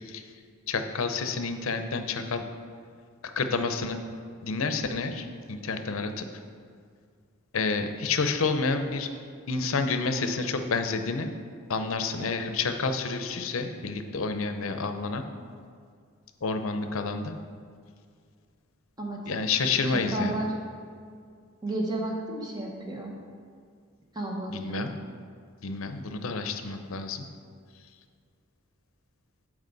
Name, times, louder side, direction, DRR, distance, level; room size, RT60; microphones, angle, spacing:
voice 1, 0.7-2.4 3.4-4.0 4.4-6.3 7.5-9.1 9.5-11.3 11.7-15.2 16.4-17.4 19.3-20.4 24.5-24.9 25.6-27.3, left 4 dB, 70° left, 8 dB, 0.6 m, -29 dB
voice 2, 19.9-20.5 21.6-23.1 24.1-24.8, right 1 dB, 20° right, -1 dB, 1.2 m, -32 dB
13.0 x 4.9 x 4.0 m, 2.2 s
head